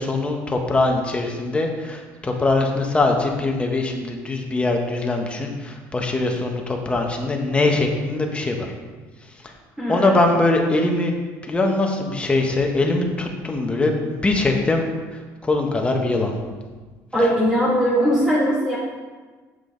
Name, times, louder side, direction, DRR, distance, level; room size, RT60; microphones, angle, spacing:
voice 1, 0.0-8.7 9.4-9.5 9.9-11.1 11.4-14.9 15.1-16.3, left 2 dB, 15° left, 2 dB, 1.3 m, -22 dB
voice 2, 9.8-10.2 17.1-18.8, equal, 10° right, -7 dB, 2.4 m, -20 dB
8.1 x 7.0 x 4.0 m, 1.4 s
cardioid pair, 115°, 7 cm